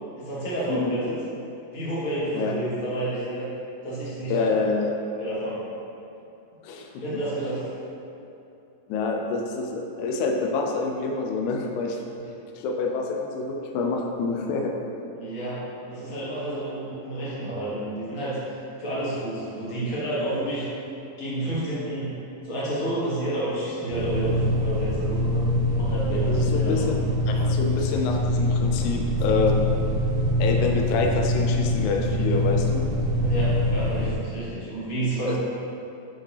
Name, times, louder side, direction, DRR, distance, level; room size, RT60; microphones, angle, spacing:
voice 1, 0.2-1.1 1.7-3.5 3.8-4.4 5.2-5.6 7.0-7.6 15.2-20.6 21.2-22.1 22.4-26.9 33.2-35.4, right 1 dB, 60° left, -9 dB, 0.9 m, -30 dB
voice 2, 0.7-1.0 2.3-2.5 4.3-4.9 6.6-7.2 8.9-12.0 12.6-14.7 26.1-27.0 27.3-29.6 30.4-32.9 35.3-35.4, left 4 dB, 80° left, 2 dB, 1.8 m, -27 dB
sound 1, 23.9-34.1, left 1 dB, 85° right, 2.6 m, -24 dB
8.4 x 4.0 x 3.3 m, 2.7 s
omnidirectional pair, 3.9 m